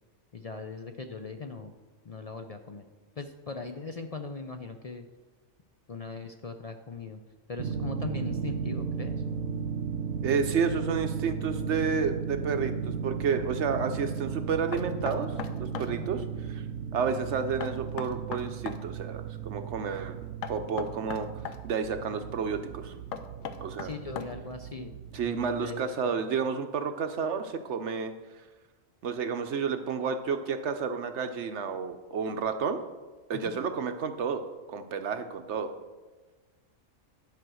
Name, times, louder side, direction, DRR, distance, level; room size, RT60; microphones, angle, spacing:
voice 1, 0.3-1.7 2.0-2.8 3.2-5.1 5.9-7.2 7.5-9.2 15.8-16.1 23.8-26.3 33.3-33.6, left 4 dB, 55° left, 6 dB, 0.4 m, -40 dB
sound 1, 7.6-25.7, right 6 dB, 90° right, 1.0 m, -35 dB
voice 2, 10.2-16.2 16.5-16.6 16.9-23.0 23.6-23.9 25.1-28.1 29.0-32.8 33.3-34.4 34.7-35.7, right 6 dB, 65° right, 8 dB, 0.9 m, -31 dB
Knock, 14.7-15.9 17.6-18.8 20.4-21.6 23.1-24.5, left 8 dB, 80° left, 1.1 m, -38 dB
10.5 x 5.0 x 6.2 m, 1.3 s
omnidirectional pair, 1.4 m